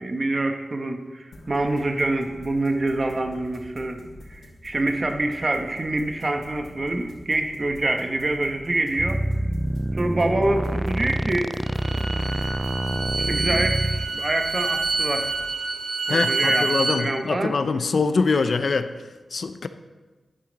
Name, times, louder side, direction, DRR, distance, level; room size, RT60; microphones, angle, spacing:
voice 1, 0.0-4.0 4.3-9.2 9.9-11.5 13.2-15.3 16.1-16.7 17.0-17.5, right 2 dB, 40° right, 5 dB, 1.0 m, -26 dB
sound 1, 1.3-15.5, left 1 dB, 85° left, 2.8 m, -46 dB
sound 2, 9.0-14.1, right 1 dB, 10° right, 0.3 m, -26 dB
Bowed string instrument, 11.6-17.0, right 3 dB, 85° right, 1.4 m, -27 dB
voice 2, 16.1-19.7, left 4 dB, 65° left, 10 dB, 0.5 m, -24 dB
10.5 x 8.7 x 4.0 m, 1.3 s
cardioid pair, 70°, 0 cm